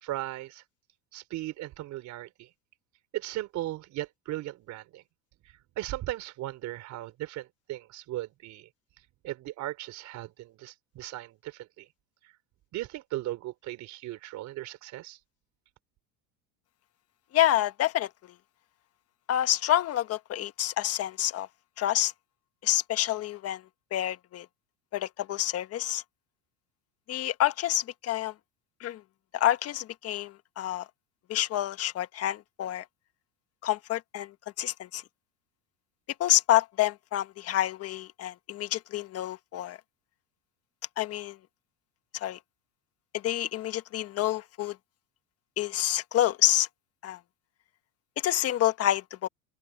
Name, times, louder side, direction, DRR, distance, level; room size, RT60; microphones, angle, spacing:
voice 1, 0.0-0.6 1.1-2.5 3.1-5.0 5.8-8.7 9.2-11.9 12.2-12.3 12.7-15.2, right 15 dB, 55° right, 3.8 m, -37 dB
voice 2, 17.3-18.1 19.3-21.5 21.8-22.1 22.6-23.6 23.9-24.5 24.9-26.0 27.1-28.3 28.8-29.0 29.3-30.9 31.3-32.8 33.6-35.0 36.2-39.8 41.0-41.4 42.1-42.4 43.1-44.8 45.6-46.7 47.0-47.2 48.2-49.3, left 13 dB, 45° left, 1.5 m, -28 dB
open air
supercardioid pair, 120°, 35 cm